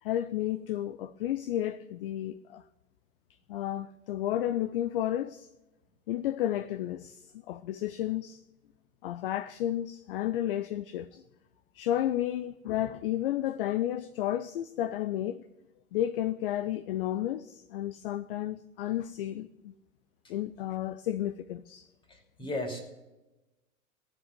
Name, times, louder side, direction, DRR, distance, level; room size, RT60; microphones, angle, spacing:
voice 1, 0.0-2.6 3.5-5.5 6.1-8.4 9.0-11.2 11.7-15.4 15.9-19.7 20.3-21.9, left 12 dB, 40° left, 0.5 m, -32 dB
voice 2, 22.1-22.8, left 1 dB, 10° left, 2.8 m, -36 dB
18.0 x 7.5 x 8.0 m
figure-of-eight pair, 105°, 43 cm